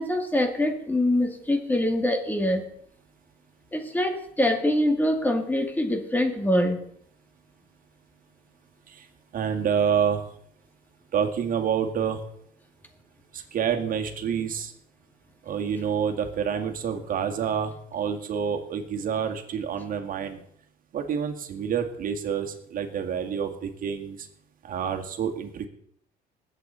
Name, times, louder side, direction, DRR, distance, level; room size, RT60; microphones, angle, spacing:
voice 1, 0.0-2.6 3.7-6.8, left 1 dB, 10° left, 5 dB, 2.2 m, -24 dB
voice 2, 9.3-10.2 11.1-12.2 13.3-14.7 15.5-20.4 20.9-24.2 24.6-25.7, right 7 dB, 55° right, 4 dB, 2.1 m, -28 dB
20.0 x 8.3 x 4.1 m, 0.66 s
cardioid pair, 110°, 17 cm